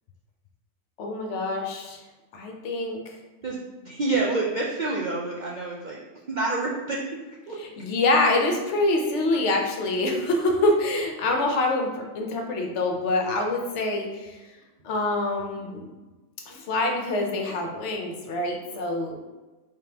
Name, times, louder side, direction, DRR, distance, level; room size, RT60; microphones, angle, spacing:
voice 1, 1.0-2.0 2.3-3.2 7.6-11.9 12.1-14.4 14.8-15.9 16.5-19.2, left 2 dB, 65° left, 2 dB, 0.9 m, -25 dB
voice 2, 3.4-6.0 6.3-7.0 7.5-7.6, right 3 dB, 80° right, -3 dB, 0.4 m, -28 dB
3.6 x 3.5 x 2.8 m, 1.2 s
omnidirectional pair, 1.4 m